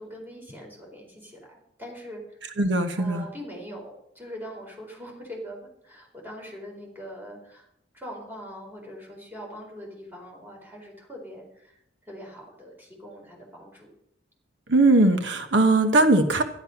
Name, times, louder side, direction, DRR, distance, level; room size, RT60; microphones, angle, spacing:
voice 1, 0.0-2.2 3.0-5.6 5.8-7.7 7.9-11.8 12.0-13.9, equal, 10° right, -2 dB, 4.3 m, -42 dB
voice 2, 2.6-3.3 14.7-16.4, right 2 dB, 85° right, 7 dB, 1.1 m, -20 dB
12.0 x 11.0 x 5.8 m, 0.75 s
head